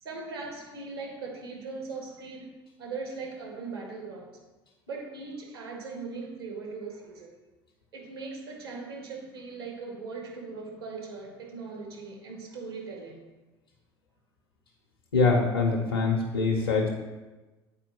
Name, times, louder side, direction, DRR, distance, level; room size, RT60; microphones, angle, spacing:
voice 1, 0.0-2.5 2.8-4.4 4.9-7.3 7.9-13.2, right 4 dB, 75° right, -1 dB, 1.4 m, -39 dB
voice 2, 15.1-16.9, left 4 dB, 75° left, 1 dB, 0.7 m, -24 dB
8.5 x 4.3 x 3.0 m, 1.2 s
figure-of-eight pair, 65°, 13 cm